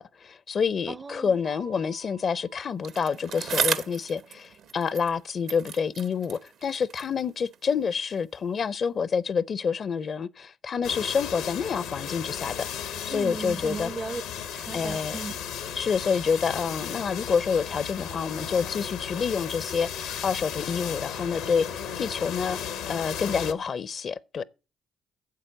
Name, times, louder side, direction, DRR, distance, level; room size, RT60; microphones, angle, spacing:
voice 1, 0.0-13.9 14.7-15.2 15.7-22.6 22.9-24.4, left 6 dB, 50° left, 0.5 m, -28 dB
voice 2, 0.9-1.3 13.1-14.2 14.5-15.3, right 4 dB, 35° right, 0.5 m, -36 dB
Mallet percussion, 1.4-3.5, right 8 dB, 85° right, 1.7 m, -54 dB
Bicycle, 2.8-5.2 5.5-7.8 8.6-8.7, right 7 dB, 70° right, 0.8 m, -34 dB
sound 1, 10.8-23.5, left 8 dB, 85° left, 0.9 m, -35 dB
7.7 x 7.5 x 7.7 m
supercardioid pair, 55°, 0 cm